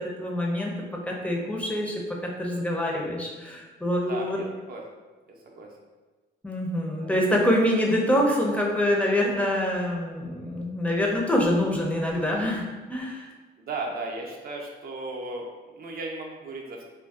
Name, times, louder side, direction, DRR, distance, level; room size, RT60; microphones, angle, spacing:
voice 1, 0.0-4.4 6.4-13.3, left 1 dB, 5° left, -1 dB, 0.5 m, -25 dB
voice 2, 4.0-4.8 5.3-5.8 6.9-7.1 7.6-7.7 13.6-16.8, right 2 dB, 50° right, 0 dB, 0.5 m, -36 dB
2.5 x 2.2 x 2.3 m, 1.3 s
cardioid pair, 90°, 20 cm